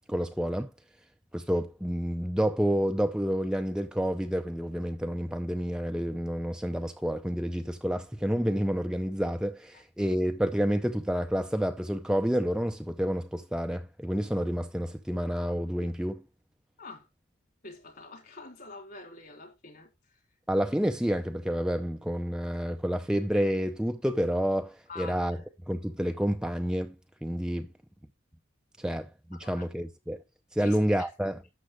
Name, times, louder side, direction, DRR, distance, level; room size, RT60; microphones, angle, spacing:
voice 1, 0.1-0.7 1.3-16.2 20.5-25.4 25.7-26.9 27.2-27.7 28.8-30.2 30.5-31.4, equal, 5° right, 0.6 m, -29 dB
voice 2, 17.6-19.9 24.9-25.4 29.3-29.7 30.6-31.1, left 3 dB, 50° left, 3.7 m, -46 dB
12.0 x 6.9 x 3.6 m
head